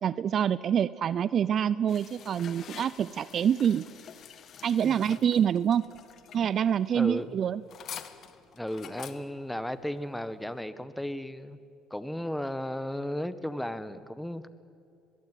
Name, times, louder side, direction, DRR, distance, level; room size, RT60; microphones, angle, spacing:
voice 1, 0.0-3.9 4.6-5.9 6.3-7.6, right 8 dB, 50° right, 18 dB, 0.6 m, -26 dB
sound 1, 1.9-10.6, left 8 dB, 55° left, 1.6 m, -48 dB
voice 2, 6.9-7.4 8.5-11.6 11.9-14.5, left 1 dB, 5° left, 13 dB, 1.5 m, -35 dB
23.0 x 21.0 x 9.3 m, 2.5 s
supercardioid pair, 75°, 0 cm